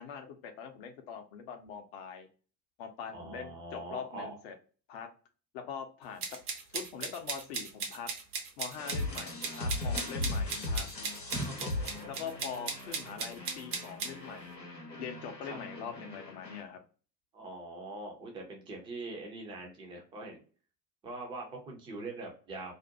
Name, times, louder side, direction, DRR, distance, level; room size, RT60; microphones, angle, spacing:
voice 1, 0.0-2.3 2.8-4.5 4.9-5.1 5.5-6.4 6.7-8.1 8.6-10.9 12.1-14.6 15.0-16.8, left 7 dB, 40° left, 6 dB, 0.6 m, -43 dB
voice 2, 3.1-4.4 11.3-12.1 15.4-15.6 17.3-20.4 21.0-22.7, right 2 dB, 10° right, 1 dB, 0.5 m, -42 dB
sound 1, 6.2-14.1, right 5 dB, 65° right, 0.9 m, -37 dB
sound 2, 8.8-16.6, left 2 dB, 90° left, 0.8 m, -38 dB
2.5 x 2.1 x 2.6 m, 0.38 s
figure-of-eight pair, 80°, 49 cm